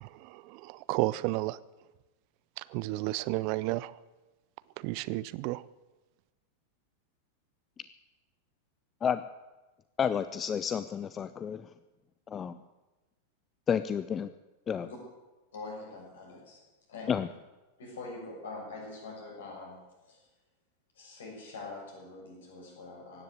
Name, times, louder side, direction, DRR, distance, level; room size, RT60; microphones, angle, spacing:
voice 1, 0.0-1.6 2.6-4.0 4.8-5.7, right 19 dB, 45° right, 19 dB, 0.5 m, -32 dB
voice 2, 10.0-11.7 12.3-12.6 13.7-14.3 14.7-14.9 17.1-17.3, left 8 dB, 25° left, 13 dB, 0.5 m, -30 dB
voice 3, 15.5-16.6 16.9-17.3 17.8-19.8 20.1-20.3 20.9-23.2, left 3 dB, 65° left, -1 dB, 6.5 m, -44 dB
16.5 x 10.5 x 8.3 m, 1.1 s
figure-of-eight pair, 90°, 0 cm